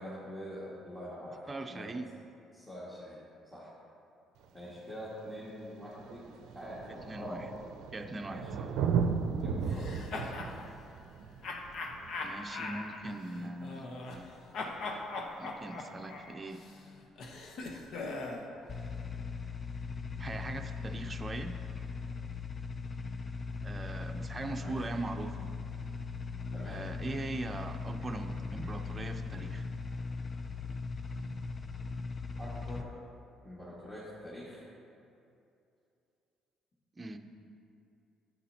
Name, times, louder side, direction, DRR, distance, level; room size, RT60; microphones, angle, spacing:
voice 1, 0.0-1.9 2.5-3.2 3.5-3.7 4.5-6.2 6.5-7.4 8.3-8.5 9.4-10.4 24.6-24.8 26.5-26.8 32.4-32.9 33.4-34.6, equal, 15° left, -9 dB, 2.0 m, -45 dB
voice 2, 1.5-2.1 7.0-7.5 7.9-8.7 12.2-14.3 15.4-16.7 20.2-21.6 23.6-25.5 26.7-29.7 37.0-37.2, right 2 dB, 30° right, 6 dB, 0.6 m, -40 dB
Thunder, 4.4-4.5 5.5-5.6 5.8-13.1 14.8-14.9, right 6 dB, 75° right, 0.5 m, -35 dB
sound 1, 9.7-10.5 11.4-14.3 14.5-18.5, left 3 dB, 65° left, 1.0 m, -40 dB
sound 2, 18.7-32.8, left 4 dB, 40° left, 0.5 m, -39 dB
9.9 x 8.5 x 2.9 m, 2.7 s
supercardioid pair, 75°, 0 cm